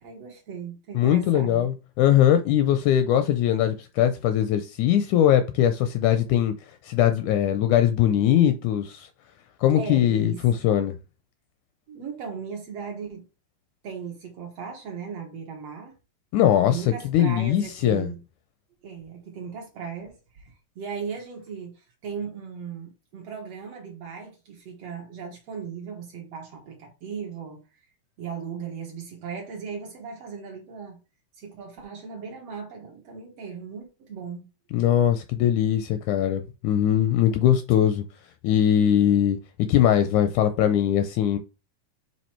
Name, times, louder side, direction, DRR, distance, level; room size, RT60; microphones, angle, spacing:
voice 1, 0.0-1.6 9.8-10.4 11.9-13.3 13.8-15.9 16.7-18.2 18.8-27.7 28.2-31.0 31.4-34.5, right 6 dB, 60° right, 1.9 m, -37 dB
voice 2, 1.0-6.5 6.8-9.1 9.6-11.0 16.3-18.1 34.7-38.0 38.4-39.4 39.7-41.4, left 10 dB, 80° left, 1.8 m, -21 dB
7.4 x 2.9 x 4.4 m
omnidirectional pair, 3.8 m